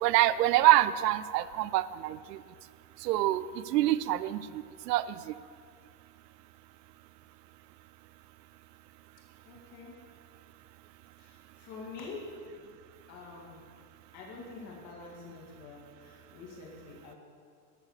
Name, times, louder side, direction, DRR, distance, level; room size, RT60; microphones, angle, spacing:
voice 1, 0.0-2.4 3.0-3.4 3.7-4.4 4.9-5.0, right 15 dB, 80° right, 15 dB, 0.6 m, -25 dB
voice 2, 9.4-9.9 11.2-12.3 13.1-13.6 14.1-17.2, left 4 dB, 35° left, -2 dB, 2.1 m, -46 dB
12.5 x 4.7 x 6.5 m, 2.1 s
supercardioid pair, 165°, 47 cm